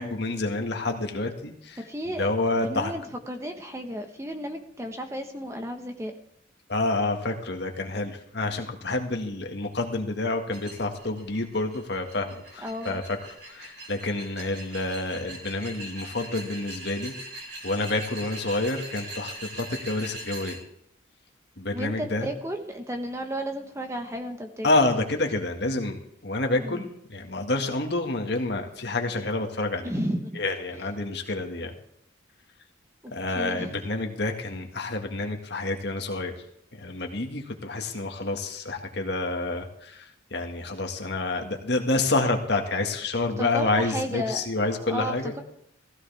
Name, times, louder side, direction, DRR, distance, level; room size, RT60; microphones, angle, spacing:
voice 1, 0.0-1.8 2.2-2.9 6.7-13.2 13.5-17.1 17.6-20.6 21.6-22.3 24.6-29.9 30.3-31.7 33.1-36.4 36.7-45.4, left 2 dB, 60° left, 3 dB, 1.9 m, -28 dB
voice 2, 1.8-2.3 2.6-6.1 12.6-13.0 21.7-24.7 26.5-26.8 29.8-30.4 33.0-33.8 43.4-45.4, equal, 15° right, 4 dB, 1.3 m, -33 dB
sound 1, 10.5-20.6, right 1 dB, 60° right, 4.5 m, -41 dB
16.0 x 15.0 x 3.5 m, 0.73 s
head